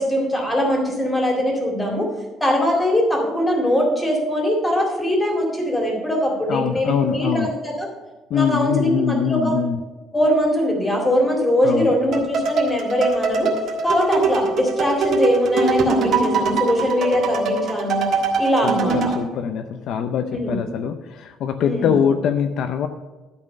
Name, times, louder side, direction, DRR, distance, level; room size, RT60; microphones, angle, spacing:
voice 1, 0.0-2.1 2.4-7.9 8.3-9.5 10.1-13.5 13.8-18.1 18.4-19.0 20.3-20.6 21.6-21.9, equal, 10° left, 0 dB, 2.2 m, -21 dB
voice 2, 6.5-7.5 8.3-9.8 11.6-11.9 18.6-22.9, left 7 dB, 60° left, 7 dB, 0.5 m, -23 dB
sound 1, 12.1-19.2, right 3 dB, 55° right, 1.6 m, -22 dB
12.0 x 4.3 x 6.5 m, 1.2 s
cardioid pair, 160°, 0 cm